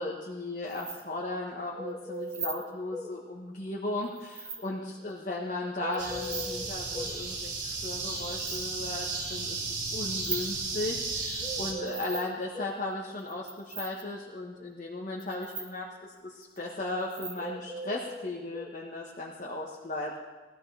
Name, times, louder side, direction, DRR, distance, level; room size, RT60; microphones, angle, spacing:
voice 1, 0.0-20.2, left 2 dB, 45° left, -3 dB, 1.3 m, -36 dB
sound 1, 0.7-1.0 2.2-2.6 4.0-4.6 5.9-6.5 7.9-8.6 9.7-10.5 11.9-12.4 13.2-14.0 15.2-15.7 16.4-16.6 17.0-17.4, right 5 dB, 30° right, 2.1 m, -39 dB
sound 2, 1.8-3.2 5.8-7.2 11.4-12.8 17.4-18.8, left 1 dB, 5° right, 1.1 m, -40 dB
sound 3, 6.0-11.7, right 3 dB, 85° right, 3.5 m, -34 dB
19.0 x 13.5 x 3.4 m, 1.3 s
head